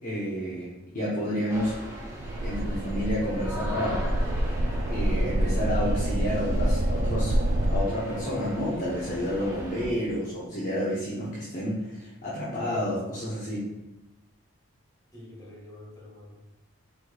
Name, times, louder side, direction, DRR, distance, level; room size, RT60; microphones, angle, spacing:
voice 1, 0.0-1.8 2.4-4.1 4.9-7.4 7.7-13.7, equal, 40° left, -9 dB, 0.8 m, -30 dB
sound 1, 1.5-9.9, equal, 10° right, 0.7 m, -39 dB
sound 2, 2.2-7.8, right 1 dB, 40° right, 0.3 m, -27 dB
voice 2, 15.1-16.5, left 1 dB, 20° left, -6 dB, 1.6 m, -47 dB
4.7 x 4.4 x 2.3 m, 0.94 s
head